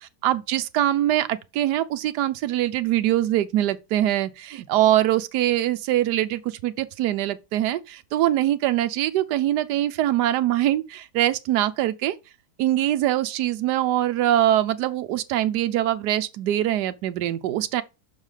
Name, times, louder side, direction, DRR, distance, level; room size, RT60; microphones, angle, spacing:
voice 1, 0.0-12.2 12.6-17.8, right 13 dB, 85° right, 1.2 m, -23 dB
6.5 x 4.8 x 5.5 m
omnidirectional pair, 1.7 m